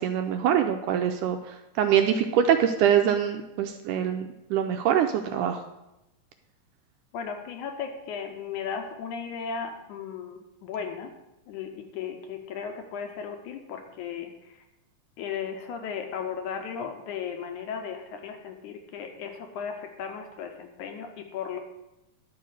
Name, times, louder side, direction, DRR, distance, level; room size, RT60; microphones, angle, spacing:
voice 1, 0.0-5.6, right 9 dB, 85° right, 6 dB, 1.8 m, -24 dB
voice 2, 7.1-11.1 11.5-14.6 15.2-21.6, left 6 dB, 75° left, 5 dB, 2.0 m, -36 dB
11.0 x 4.8 x 6.4 m, 0.92 s
omnidirectional pair, 4.1 m